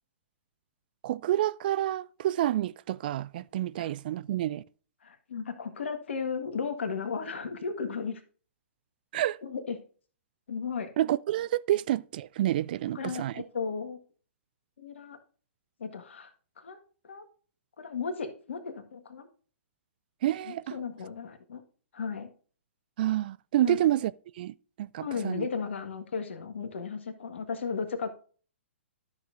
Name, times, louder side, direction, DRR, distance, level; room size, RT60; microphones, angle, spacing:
voice 1, 1.0-4.6 9.1-9.4 11.0-13.4 20.2-20.7 23.0-24.1 24.4-25.5, right 13 dB, 45° right, 0.3 m, -28 dB
voice 2, 5.0-8.2 9.4-9.8 10.5-10.9 12.9-14.0 14.8-15.2 15.8-16.3 16.6-16.8 17.0-17.2 17.8-19.3 20.5-21.6 21.9-22.3 23.6-23.8 25.0-28.1, left 5 dB, 60° left, 1.6 m, -35 dB
13.0 x 6.7 x 2.6 m
figure-of-eight pair, 115°, 7 cm